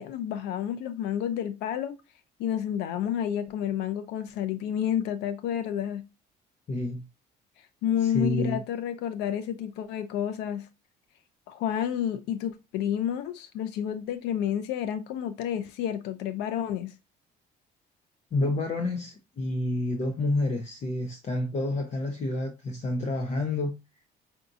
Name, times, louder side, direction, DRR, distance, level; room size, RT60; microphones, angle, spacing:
voice 1, 0.0-2.0 2.4-6.0 7.8-10.7 11.5-16.9, left 10 dB, 90° left, 0.6 m, -30 dB
voice 2, 6.7-7.0 8.0-8.6 18.3-23.7, left 2 dB, 40° left, 0.7 m, -29 dB
5.8 x 2.7 x 2.5 m
cardioid pair, 110°, 17 cm